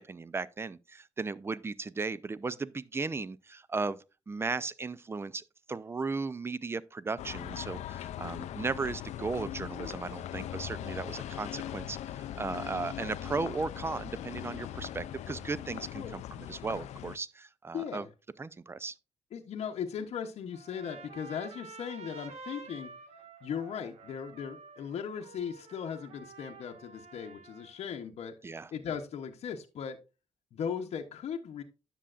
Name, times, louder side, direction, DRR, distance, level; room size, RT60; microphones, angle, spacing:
voice 1, 0.0-18.1 18.4-18.9 28.4-28.7, right 4 dB, 20° right, 0.4 m, -36 dB
sound 1, 7.2-17.2, left 11 dB, 80° left, 0.4 m, -40 dB
voice 2, 17.7-18.1 19.3-22.9 23.4-28.4 28.7-30.0 30.5-31.6, left 7 dB, 65° left, 0.8 m, -38 dB
Trumpet, 20.5-27.9, right 4 dB, 70° right, 1.2 m, -50 dB
9.9 x 6.9 x 2.4 m
cardioid pair, 95°, 11 cm